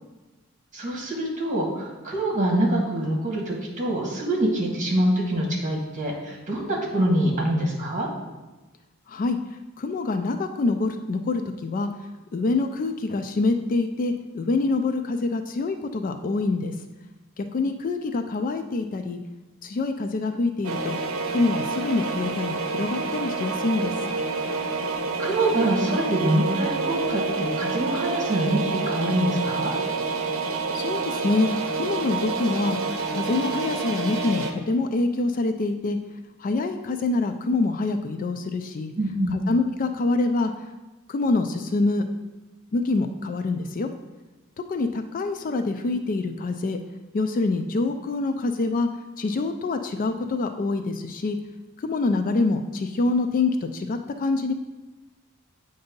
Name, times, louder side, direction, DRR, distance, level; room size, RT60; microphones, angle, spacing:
voice 1, 0.7-8.1 25.2-29.7 39.0-39.4, right 1 dB, 40° right, -2 dB, 1.5 m, -25 dB
voice 2, 9.8-11.9 12.3-16.7 17.4-19.2 19.6-21.0 21.3-23.9 30.7-31.5 31.7-32.8 33.1-36.0 36.4-38.9 39.3-40.5 41.1-42.1 42.7-43.9 44.7-46.8 47.1-48.9 49.2-51.4 51.8-54.5, left 3 dB, 40° left, 7 dB, 0.3 m, -25 dB
sound 1, 20.6-34.5, right 4 dB, 75° right, 0.7 m, -28 dB
7.8 x 2.7 x 5.2 m, 1.2 s
head